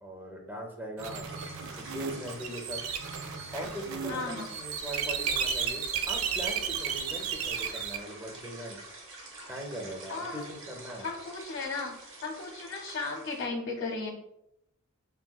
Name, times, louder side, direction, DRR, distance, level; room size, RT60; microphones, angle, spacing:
voice 1, 0.0-1.3 1.8-2.9 3.5-8.8 9.5-11.1, equal, 10° right, 1 dB, 0.5 m, -40 dB
sound 1, 1.0-8.0, right 6 dB, 85° right, 0.4 m, -34 dB
sound 2, 1.3-13.5, right 2 dB, 70° right, 0.8 m, -47 dB
voice 2, 4.1-4.5 10.1-10.4 11.0-11.9 12.2-14.1, left 3 dB, 65° left, -2 dB, 0.7 m, -35 dB
3.8 x 2.2 x 2.3 m, 0.80 s
head